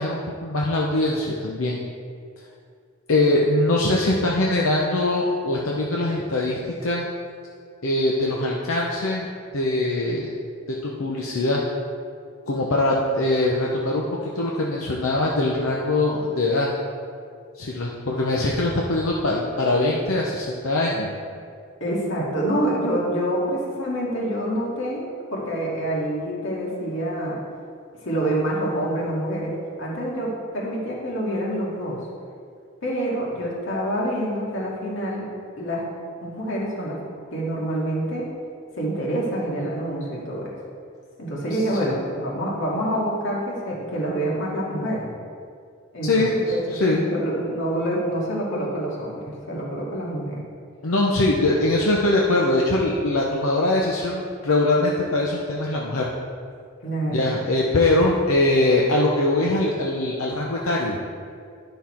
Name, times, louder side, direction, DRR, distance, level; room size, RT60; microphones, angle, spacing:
voice 1, 0.0-1.8 3.1-7.1 7.8-9.3 9.5-10.3 10.8-11.6 12.5-14.1 14.3-16.7 17.5-21.1 41.8-42.0 46.1-46.4 46.8-47.1 50.8-56.1 57.1-61.0, left 2 dB, 90° left, -3 dB, 0.8 m, -22 dB
voice 2, 21.8-27.4 28.0-32.0 32.8-35.3 35.6-35.8 36.2-37.0 37.3-38.3 38.8-40.5 41.2-45.1 45.9-50.4 56.8-57.3, right 1 dB, 65° left, -4 dB, 2.1 m, -27 dB
10.5 x 5.6 x 4.4 m, 2.3 s
head